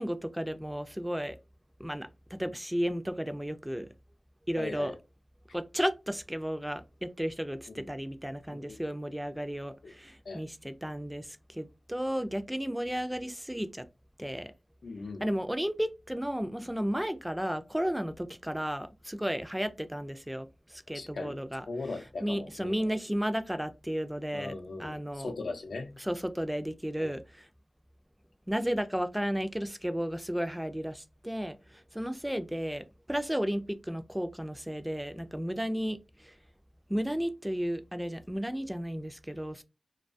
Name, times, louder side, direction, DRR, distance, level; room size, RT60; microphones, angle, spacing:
voice 1, 0.0-1.4 1.8-3.9 4.5-4.9 5.5-13.8 14.2-14.5 15.2-21.7 22.2-25.3 26.0-27.5 28.5-36.3 36.9-39.6, equal, 5° right, 0.3 m, -33 dB
voice 2, 4.5-5.0 7.7-7.9 8.5-8.8 9.8-9.9 10.2-10.4 14.8-15.3 20.9-21.4 21.7-22.9 24.3-26.0 27.0-27.1, left 3 dB, 90° left, 0.5 m, -39 dB
2.3 x 2.2 x 2.5 m
wide cardioid pair, 80°, 0 cm